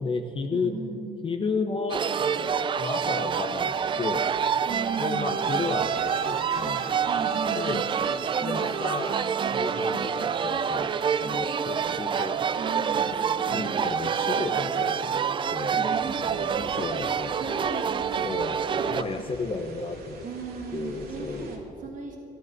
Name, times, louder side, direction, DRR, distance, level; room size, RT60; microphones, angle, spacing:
voice 1, 0.0-0.7 1.2-2.0 2.4-4.3 5.0-6.9 7.1-7.8 8.4-9.2 9.5-12.4 13.1-14.9 15.5-16.0 16.5-17.3 18.2-20.2 20.7-21.6, left 4 dB, 30° left, 5 dB, 0.9 m, -33 dB
voice 2, 0.5-1.2 4.7-5.4 7.1-7.9 8.4-8.7 12.6-13.3 15.7-16.8 17.2-18.4 18.7-19.0 20.2-22.2, right 4 dB, 50° right, 0 dB, 1.7 m, -37 dB
sound 1, 1.9-19.0, right 7 dB, 30° right, 0.4 m, -27 dB
sound 2, 5.2-11.4, right 8 dB, 85° right, 1.0 m, -42 dB
sound 3, 15.9-21.6, right 3 dB, 70° right, 2.2 m, -46 dB
13.5 x 11.0 x 6.0 m, 2.6 s
cardioid pair, 110°, 17 cm